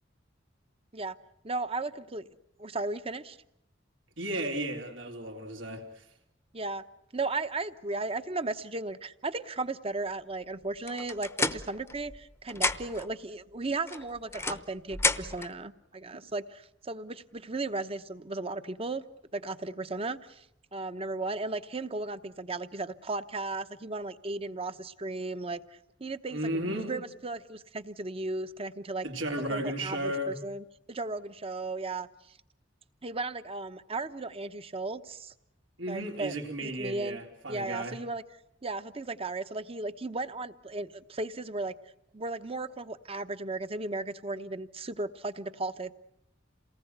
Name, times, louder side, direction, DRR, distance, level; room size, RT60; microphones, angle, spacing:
voice 1, 1.4-2.2 2.6-3.4 6.5-6.8 7.1-19.0 19.3-20.5 20.7-25.6 26.0-29.1 29.5-32.4 33.0-35.3 35.9-36.3 36.6-37.2 37.5-38.2 38.6-41.7 42.1-45.9, right 2 dB, 30° right, 11 dB, 1.0 m, -35 dB
voice 2, 4.2-6.1 26.3-27.0 29.0-30.3 35.8-38.0, right 1 dB, 85° right, 2 dB, 3.8 m, -34 dB
sound 1, 10.9-12.2 12.5-13.1 13.9-15.5, left 3 dB, 15° left, 0.9 m, -31 dB
28.0 x 19.0 x 8.1 m, 0.81 s
head